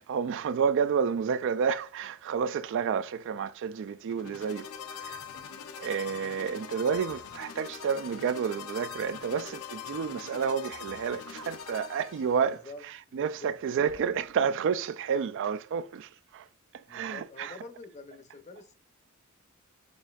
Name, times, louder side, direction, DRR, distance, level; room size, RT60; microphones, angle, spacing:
voice 1, 0.0-5.2 5.8-12.6 13.1-16.5 16.7-17.5, right 6 dB, 60° right, 0.3 m, -30 dB
sound 1, 4.1-12.6, left 7 dB, 90° left, 0.6 m, -43 dB
voice 2, 12.4-13.5 14.0-14.1 16.9-18.7, left 3 dB, 35° left, 0.6 m, -47 dB
sound 2, 13.8-14.6, right 1 dB, 30° right, 0.8 m, -59 dB
6.2 x 2.6 x 2.4 m
head